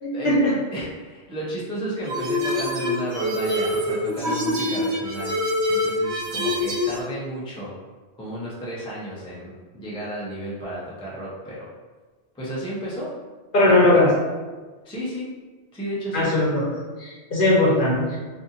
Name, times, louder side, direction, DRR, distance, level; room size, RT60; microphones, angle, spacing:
voice 1, 0.0-0.6 13.5-14.1 16.1-16.7 17.0-18.2, left 1 dB, 50° left, -5 dB, 0.9 m, -19 dB
voice 2, 0.7-5.4 5.7-7.7 8.2-11.7 12.3-13.1 13.7-13.9 14.8-15.4 15.7-16.3, right 1 dB, 10° left, -6 dB, 0.3 m, -32 dB
sound 1, 2.1-7.0, left 1 dB, 70° right, 1.0 m, -25 dB
2.6 x 2.6 x 2.5 m, 1.3 s
omnidirectional pair, 1.2 m